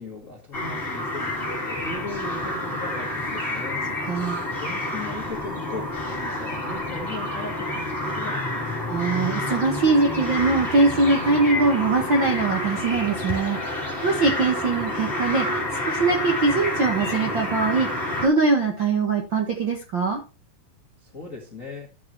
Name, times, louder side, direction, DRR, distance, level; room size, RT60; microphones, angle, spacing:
voice 1, 0.0-3.8 4.5-8.8 21.0-21.9, left 3 dB, 35° left, 0 dB, 1.4 m, -38 dB
sound 1, 0.5-18.3, left 1 dB, 15° left, 3.2 m, -29 dB
voice 2, 4.0-4.4 8.9-17.9 18.2-20.2, right 3 dB, 50° right, 2 dB, 1.4 m, -22 dB
13.5 x 6.9 x 3.1 m, 0.30 s
omnidirectional pair, 4.3 m